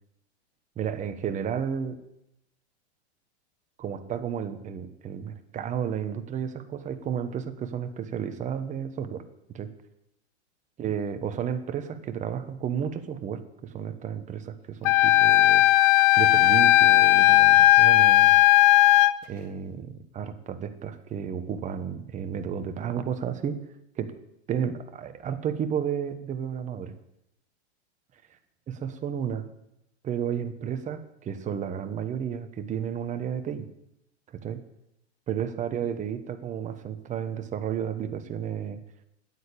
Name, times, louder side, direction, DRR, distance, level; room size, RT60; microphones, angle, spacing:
voice 1, 0.8-2.0 3.8-9.2 9.5-9.7 10.8-15.7 16.2-18.3 19.3-23.6 24.0-24.2 24.5-26.9 28.7-29.4 30.0-33.7 34.3-34.6 35.3-38.8, right 8 dB, 20° right, 9 dB, 1.0 m, -32 dB
Wind instrument woodwind instrument, 14.9-19.1, left 17 dB, 45° left, 0.6 m, -17 dB
9.4 x 8.7 x 8.5 m, 0.84 s
hypercardioid pair, 130°, 34 cm